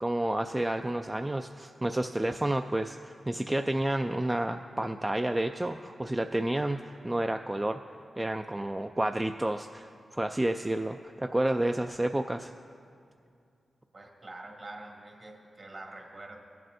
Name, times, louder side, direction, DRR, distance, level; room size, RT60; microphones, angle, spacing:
voice 1, 0.0-7.8 8.2-12.5, right 1 dB, 20° right, 6 dB, 0.3 m, -30 dB
voice 2, 13.9-16.4, right 2 dB, 50° right, 0 dB, 1.8 m, -45 dB
18.0 x 7.6 x 2.7 m, 2.4 s
cardioid pair, 60°, 0 cm